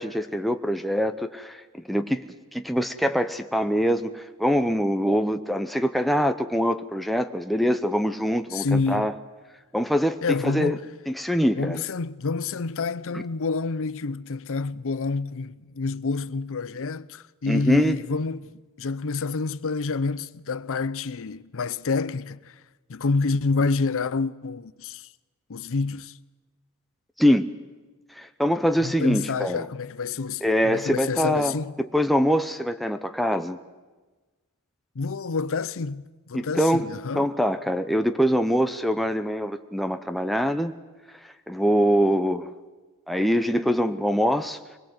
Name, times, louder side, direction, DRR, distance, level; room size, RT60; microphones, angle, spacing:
voice 1, 0.0-1.6 1.9-2.2 2.5-9.1 9.7-10.2 10.4-10.8 11.1-11.8 13.1-13.2 17.5-18.0 27.2-27.5 28.2-29.7 30.4-31.5 31.9-33.6 36.3-36.9 37.2-40.7 41.5-42.5 43.1-44.6, equal, ahead, 0.7 m, -23 dB
voice 2, 8.5-9.1 10.2-10.8 11.6-18.5 18.8-22.5 22.9-25.1 25.5-26.1 28.8-31.7 35.0-37.3, left 4 dB, 65° left, 0.7 m, -28 dB
23.5 x 21.0 x 7.9 m
head